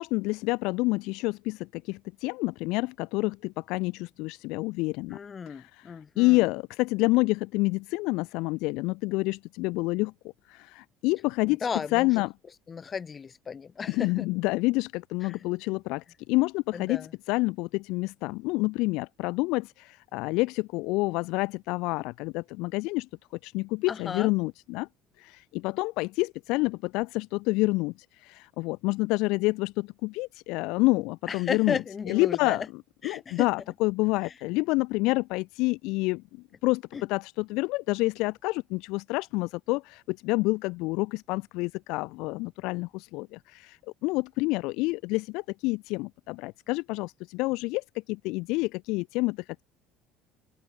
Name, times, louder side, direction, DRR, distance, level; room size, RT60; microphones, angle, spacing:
voice 1, 0.0-5.2 5.5-10.1 10.5-11.6 11.9-12.3 13.9-23.1 23.4-24.9 25.2-32.6 33.0-36.2 36.6-49.6, left 23 dB, 70° left, 2.0 m, -28 dB
voice 2, 5.1-6.5 11.5-12.1 12.7-14.3 15.2-15.5 16.7-17.1 23.9-24.3 31.3-32.7 33.0-33.5 34.2-34.3 36.9-37.0, left 6 dB, 35° left, 6.4 m, -34 dB
open air
hypercardioid pair, 65°, 0 cm